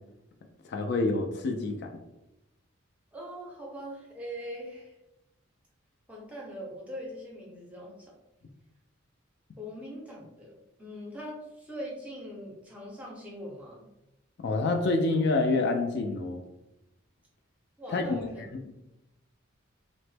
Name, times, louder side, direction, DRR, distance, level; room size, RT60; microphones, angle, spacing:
voice 1, 0.7-2.0 14.4-16.4 17.9-18.2, left 3 dB, 55° left, 4 dB, 0.3 m, -27 dB
voice 2, 3.1-5.0 6.1-8.1 9.6-13.8 17.8-18.4, equal, 5° right, -3 dB, 0.6 m, -41 dB
2.9 x 2.1 x 3.2 m, 0.92 s
head